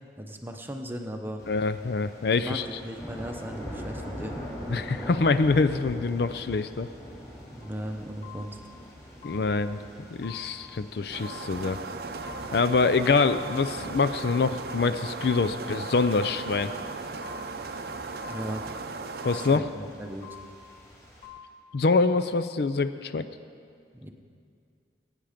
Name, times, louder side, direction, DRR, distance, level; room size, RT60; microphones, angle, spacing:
voice 1, 0.2-1.4 2.4-4.4 7.5-8.6 18.3-18.6 19.4-20.4 23.9-24.1, equal, 10° right, 4 dB, 0.8 m, -37 dB
sound 1, 1.4-21.3, equal, 15° left, 3.2 m, -44 dB
voice 2, 1.5-2.8 4.7-6.9 9.2-9.8 10.1-11.8 12.5-16.7 19.2-19.7 21.7-23.3, left 4 dB, 60° left, 11 dB, 0.4 m, -25 dB
sound 2, 7.6-7.8 8.2-8.8 9.2-9.8 10.2-10.8 11.2-11.8 12.2-12.8 13.2-13.8 14.2-14.8 15.2-15.8 16.2-16.8 17.2-17.8 18.2-18.8 19.2-19.8 20.2-20.8 21.2-21.5, left 8 dB, 35° left, 1.2 m, -48 dB
sound 3, 11.1-19.6, right 3 dB, 55° right, 0.6 m, -37 dB
21.0 x 9.1 x 5.0 m, 2.3 s
head